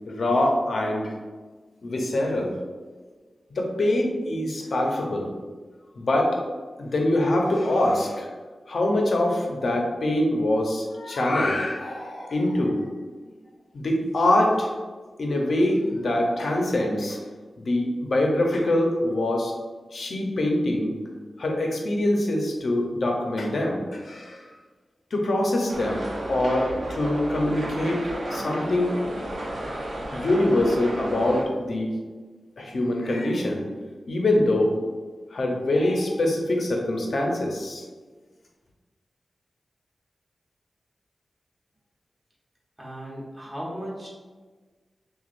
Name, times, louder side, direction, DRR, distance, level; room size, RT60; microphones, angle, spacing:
voice 1, 0.1-1.1 1.8-2.5 3.5-5.3 6.0-6.4 6.8-8.3 8.7-12.9 13.7-14.7 15.2-17.2 17.6-19.5 19.9-20.9 21.4-24.5 25.1-29.0 30.1-31.9 32.6-34.8 35.3-37.8, left 1 dB, 75° left, 0 dB, 0.7 m, -24 dB
sound 1, 25.7-31.5, right 1 dB, 80° right, 0.8 m, -33 dB
voice 2, 42.8-44.1, equal, 20° right, -5 dB, 1.3 m, -36 dB
6.0 x 2.4 x 2.5 m, 1.4 s
wide cardioid pair, 85°, 0 cm